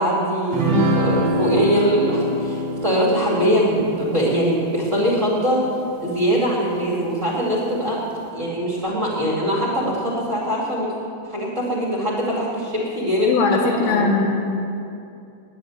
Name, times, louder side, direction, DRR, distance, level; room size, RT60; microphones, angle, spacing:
voice 1, 0.0-5.6 6.0-8.0 8.3-10.9 11.2-14.1, equal, 25° right, -6 dB, 1.9 m, -22 dB
sound 1, 0.5-6.2, equal, 65° right, 1.6 m, -25 dB
voice 2, 13.3-14.3, left 4 dB, 90° left, 2 dB, 3.2 m, -20 dB
10.0 x 9.7 x 9.2 m, 2.6 s
omnidirectional pair, 4.3 m